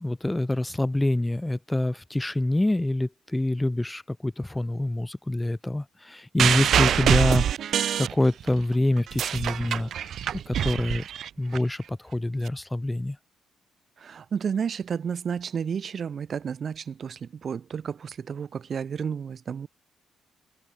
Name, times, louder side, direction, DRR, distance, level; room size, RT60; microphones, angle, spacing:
voice 1, 0.0-10.1 10.5-11.0 11.4-13.2, left 1 dB, 10° left, 1.5 m, -26 dB
sound 1, 6.4-8.6 9.0-11.6 12.5-12.6, right 9 dB, 65° right, 0.3 m, -25 dB
voice 2, 14.0-19.7, right 7 dB, 50° right, 1.8 m, -31 dB
cardioid pair, 90°, 0 cm